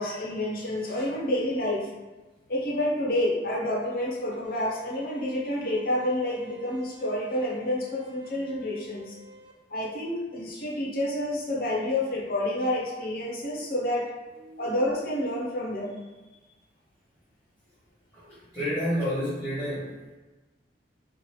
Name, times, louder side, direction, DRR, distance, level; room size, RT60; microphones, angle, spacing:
voice 1, 0.0-1.9 2.5-9.1 9.7-14.1 14.6-16.0, left 1 dB, 50° left, -3 dB, 0.8 m, -29 dB
sound 1, 4.4-9.5, right 1 dB, 65° right, 0.5 m, -49 dB
voice 2, 18.1-20.1, equal, 15° left, -12 dB, 1.0 m, -30 dB
3.1 x 2.4 x 3.1 m, 1.2 s
head